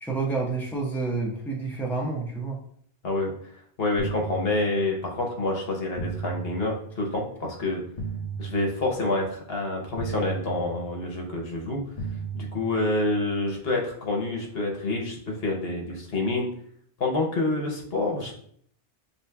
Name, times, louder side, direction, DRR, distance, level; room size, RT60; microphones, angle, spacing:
voice 1, 0.0-2.6, right 3 dB, ahead, -2 dB, 0.7 m, -29 dB
voice 2, 3.8-7.8 8.4-11.8 12.3-16.5 17.0-18.4, left 2 dB, 70° left, 1 dB, 1.1 m, -27 dB
sound 1, 4.0-5.2 6.0-7.2 8.0-9.2 10.0-11.2 12.0-13.2, right 4 dB, 45° left, 0.6 m, -36 dB
6.8 x 2.7 x 2.2 m, 0.64 s
omnidirectional pair, 1.0 m